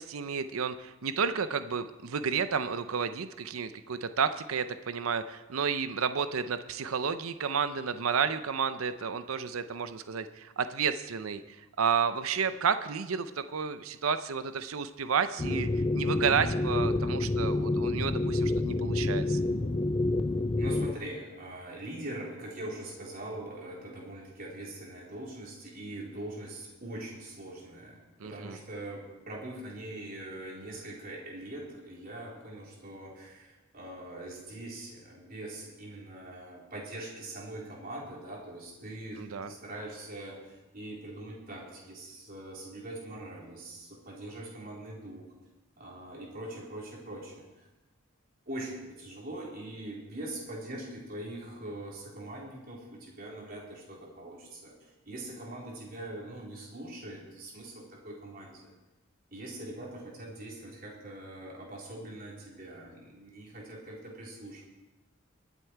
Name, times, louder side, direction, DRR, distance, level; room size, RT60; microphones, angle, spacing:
voice 1, 0.0-15.7 15.9-19.4 28.2-28.6 39.2-39.5, right 6 dB, 90° right, 11 dB, 0.6 m, -31 dB
sound 1, 15.4-20.9, left 2 dB, 25° left, 0.5 m, -28 dB
voice 2, 20.6-45.3 45.8-47.7 48.5-58.7 59.3-64.6, right 1 dB, 45° right, -3 dB, 3.9 m, -42 dB
23.0 x 8.3 x 4.6 m, 1.1 s
head